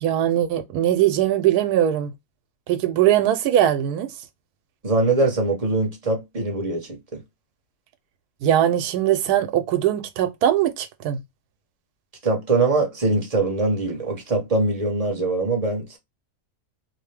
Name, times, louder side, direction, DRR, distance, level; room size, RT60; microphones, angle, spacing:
voice 1, 0.0-2.1 2.7-4.1 8.4-11.2, right 11 dB, 85° right, 1.1 m, -20 dB
voice 2, 4.8-7.2 12.2-16.0, right 2 dB, 30° right, 0.8 m, -22 dB
2.8 x 2.1 x 3.2 m
omnidirectional pair, 1.6 m